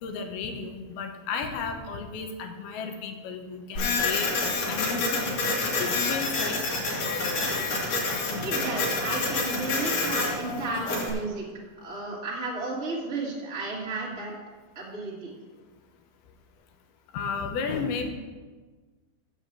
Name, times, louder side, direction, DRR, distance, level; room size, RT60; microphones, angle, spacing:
voice 1, 0.0-4.3 4.7-5.4 5.7-7.4 17.1-18.1, left 5 dB, 85° left, 5 dB, 2.9 m, -33 dB
Printer, 3.8-11.1, left 3 dB, 60° left, 3.6 m, -28 dB
voice 2, 8.4-11.5 11.8-14.3 14.7-15.3, right 3 dB, 25° right, -5 dB, 1.5 m, -33 dB
7.5 x 7.1 x 7.9 m, 1.4 s
omnidirectional pair, 4.4 m